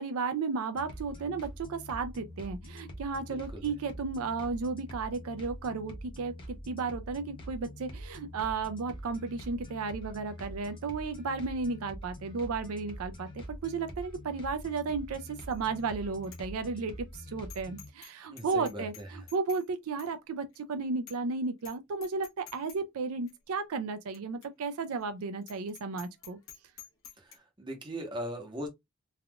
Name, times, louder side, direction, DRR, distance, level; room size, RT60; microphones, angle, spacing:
voice 1, 0.0-26.4, right 4 dB, 75° right, 0.4 m, -34 dB
sound 1, 0.7-17.9, equal, 20° left, 0.7 m, -45 dB
voice 2, 3.3-3.7 18.3-19.3 27.2-28.7, equal, 20° right, 0.8 m, -40 dB
Bicycle bell, 15.5-15.8 16.2-16.4 16.8-16.9 17.5-18.1 18.4-19.7 20.0-20.1 20.5-20.6 21.1-21.3 21.6-21.8 22.0-22.8 23.3-23.4 24.1-24.2 24.4-24.5 24.9-25.0 25.4-27.4, left 9 dB, 60° left, 0.9 m, -50 dB
3.4 x 2.4 x 2.2 m
head